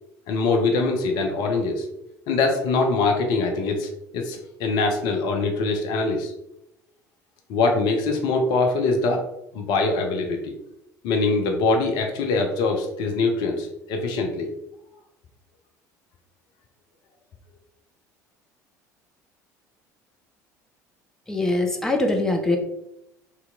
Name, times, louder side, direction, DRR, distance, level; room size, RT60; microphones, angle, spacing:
voice 1, 0.3-1.9 2.3-6.3 7.5-9.2 9.5-10.6 11.0-14.5, left 3 dB, 50° left, 3 dB, 0.6 m, -23 dB
voice 2, 21.3-22.6, left 2 dB, 5° left, 2 dB, 0.6 m, -22 dB
3.2 x 2.9 x 3.7 m, 0.82 s
figure-of-eight pair, 60°, 9 cm